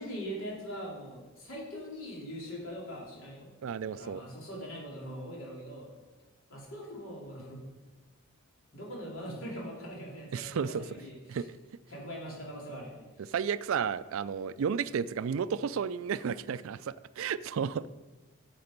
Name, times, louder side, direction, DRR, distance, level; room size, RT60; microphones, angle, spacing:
voice 1, 0.0-3.5 3.9-5.9 6.5-7.6 8.7-11.4 11.9-13.3, equal, 70° left, -3 dB, 3.2 m, -42 dB
voice 2, 3.6-4.2 10.3-10.8 11.3-11.4 13.3-17.9, right 7 dB, 70° right, 17 dB, 0.3 m, -32 dB
10.5 x 7.6 x 5.2 m, 1.2 s
head